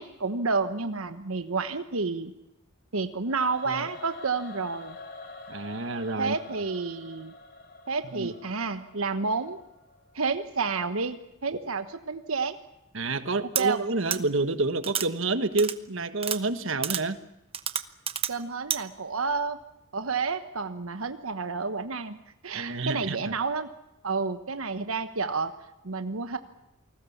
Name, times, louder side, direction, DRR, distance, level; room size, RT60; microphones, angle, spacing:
voice 1, 0.0-2.3 2.9-5.0 6.2-7.3 7.9-9.6 10.1-12.6 13.5-13.8 18.3-19.6 19.9-22.2 22.4-23.7 24.0-25.5 25.8-26.4, right 4 dB, 85° right, 9 dB, 1.2 m, -30 dB
Singing / Musical instrument, 3.2-10.3, left 3 dB, 45° left, 3.3 m, -47 dB
voice 2, 5.5-6.3 8.2-8.3 12.9-17.2 22.5-23.3, right 3 dB, 70° right, 10 dB, 1.4 m, -28 dB
sound 1, 13.5-13.6 14.1-14.2 14.8-15.1 15.6-15.7 16.2-16.4 16.8-17.0 17.5-18.3 18.7-18.8, right 9 dB, 30° right, 1.0 m, -29 dB
28.5 x 20.0 x 7.2 m, 0.89 s
head